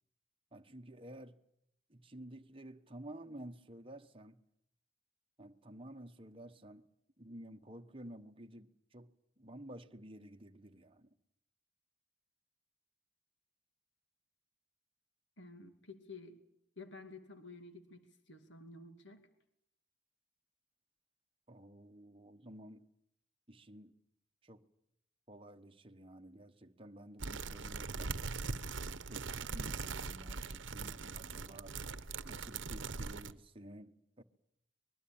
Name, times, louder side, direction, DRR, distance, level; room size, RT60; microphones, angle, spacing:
voice 1, 0.5-1.4 1.9-4.4 5.4-6.9 7.2-11.1 21.5-22.9 23.5-24.0 24.4-24.7 25.3-28.2 28.8-31.8 32.2-34.2, right 1 dB, 25° right, 1.2 m, -52 dB
voice 2, 15.4-16.4 16.8-19.2, left 3 dB, 60° left, 2.5 m, -52 dB
sound 1, 27.2-33.3, right 4 dB, 65° right, 1.0 m, -41 dB
25.0 x 21.5 x 8.8 m
head